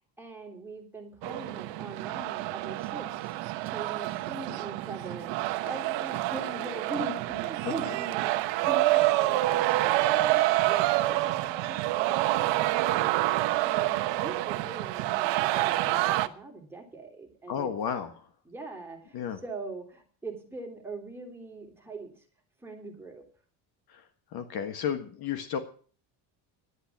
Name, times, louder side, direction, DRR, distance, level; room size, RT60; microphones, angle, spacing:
voice 1, 0.2-3.3 3.6-5.3 5.6-17.7 18.4-22.2 22.6-23.2, right 2 dB, 5° right, 1 dB, 3.3 m, -42 dB
sound 1, 1.2-16.3, right 17 dB, 70° right, 1.0 m, -27 dB
voice 2, 17.5-18.3 19.1-19.4 23.9-25.6, left 8 dB, 55° left, 9 dB, 1.5 m, -33 dB
11.5 x 9.9 x 7.3 m, 0.43 s
cardioid pair, 145°, 45 cm